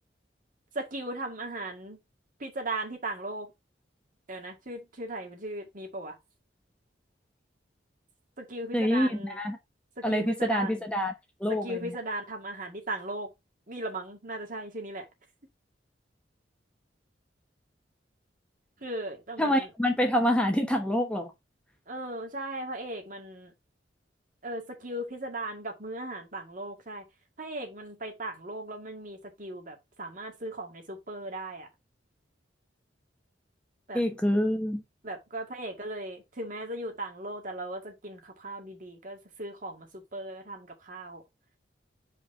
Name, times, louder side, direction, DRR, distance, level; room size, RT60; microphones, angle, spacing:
voice 1, 0.8-2.0 2.4-3.5 4.3-6.1 8.4-9.4 10.0-10.8 11.5-13.3 13.7-15.1 18.8-19.7 21.9-23.5 24.4-27.0 27.4-31.7 33.9-34.0 35.0-41.2, right 1 dB, 45° right, 1.9 m, -37 dB
voice 2, 8.7-9.6 10.0-11.1 11.4-12.0 19.4-21.3 33.9-34.8, equal, 5° left, 0.9 m, -26 dB
5.0 x 4.0 x 5.4 m
head